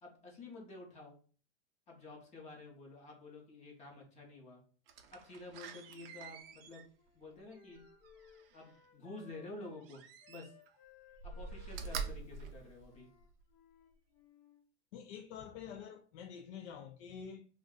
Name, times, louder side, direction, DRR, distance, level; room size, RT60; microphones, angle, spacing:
voice 1, 0.0-1.2 1.9-4.6 5.1-6.9 7.1-7.8 8.5-10.5 11.2-13.1, left 2 dB, 20° left, 0.7 m, -50 dB
Slam, 4.9-8.7 9.8-10.8 11.1-13.4 13.9-14.0, right 5 dB, 55° right, 0.5 m, -46 dB
Wind instrument woodwind instrument, 5.9-9.8 10.2-14.6, left 6 dB, 50° left, 0.8 m, -63 dB
voice 2, 14.9-17.5, left 7 dB, 70° left, 0.5 m, -47 dB
2.5 x 2.2 x 3.6 m
supercardioid pair, 140°, 35 cm